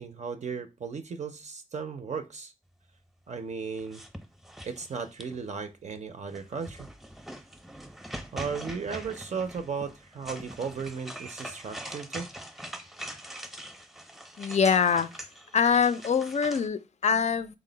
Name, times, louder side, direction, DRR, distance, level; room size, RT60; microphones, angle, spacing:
voice 1, 0.0-2.5 3.3-4.0 4.6-6.9 8.3-12.3, right 5 dB, 55° right, 0.4 m, -35 dB
sound 1, 3.8-5.5 6.3-16.7, right 1 dB, ahead, 0.6 m, -43 dB
voice 2, 14.4-15.2 15.5-17.6, left 6 dB, 55° left, 0.4 m, -24 dB
3.7 x 2.0 x 3.8 m
wide cardioid pair, 80°, 14 cm